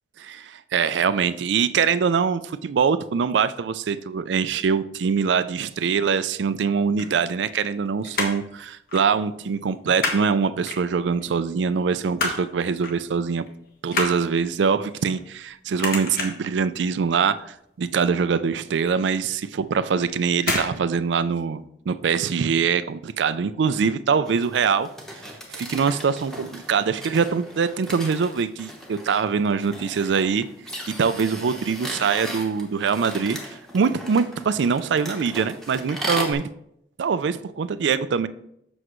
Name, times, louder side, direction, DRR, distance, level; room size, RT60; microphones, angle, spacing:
voice 1, 0.2-13.5 13.8-17.4 17.8-24.9 25.5-30.5 30.9-36.5 37.0-38.3, right 6 dB, 80° right, 0.4 m, -23 dB
sound 1, 6.7-7.8 8.0-8.5 8.9-9.1 9.4-10.2 10.6-11.2 11.7-12.5 12.8-13.0 13.4-15.5 15.8-16.5 17.0-17.3 17.5-17.6 18.0-18.1 18.6-18.7 19.5-19.8 20.4-20.7 21.0-21.1, left 3 dB, 55° left, 1.4 m, -28 dB
sound 2, 24.3-36.3, equal, 5° left, 1.0 m, -37 dB
7.9 x 6.2 x 3.1 m
head